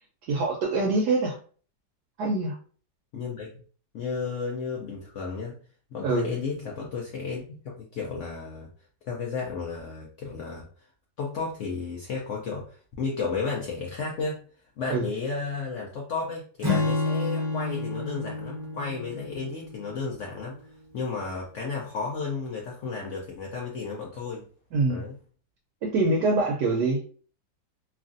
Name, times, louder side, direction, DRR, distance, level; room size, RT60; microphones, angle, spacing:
voice 1, 0.3-1.4 2.2-2.6 6.0-6.3 14.9-15.1 24.7-25.0 25.8-27.1, right 3 dB, 70° right, -1 dB, 1.1 m, -24 dB
voice 2, 3.1-3.5 3.9-5.6 5.9-8.7 9.1-10.7 11.2-14.4 14.8-20.5 20.9-24.4 24.9-25.1, left 4 dB, 85° left, -2 dB, 0.6 m, -33 dB
Acoustic guitar / Strum, 16.6-20.1, left 3 dB, 35° right, 0.4 m, -29 dB
3.0 x 2.5 x 2.5 m, 0.43 s
omnidirectional pair, 1.9 m